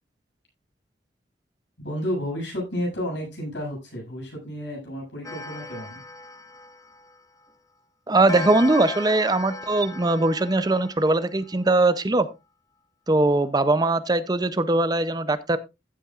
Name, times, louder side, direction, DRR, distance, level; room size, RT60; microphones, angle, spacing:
voice 1, 1.8-6.0, equal, 70° left, -1 dB, 7.7 m, -31 dB
Clock, 5.2-7.5 8.3-11.7, left 2 dB, 20° left, 1.2 m, -38 dB
voice 2, 8.1-12.3 13.1-15.6, right 2 dB, 20° right, 13 dB, 0.5 m, -21 dB
15.5 x 8.4 x 2.4 m, 0.24 s
head